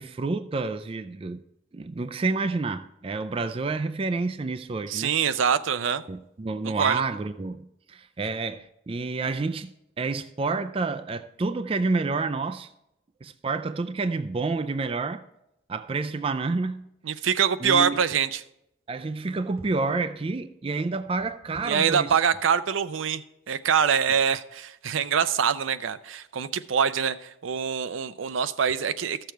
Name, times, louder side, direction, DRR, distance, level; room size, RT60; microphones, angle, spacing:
voice 1, 0.0-1.4 1.7-5.1 6.1-9.7 10.0-12.7 13.2-15.2 15.7-16.8 17.6-18.0 18.9-22.1, right 3 dB, 30° right, 0.4 m, -29 dB
voice 2, 4.9-6.0 6.6-7.0 17.1-18.4 21.7-29.3, right 7 dB, 85° right, 0.5 m, -25 dB
14.0 x 6.7 x 4.5 m
head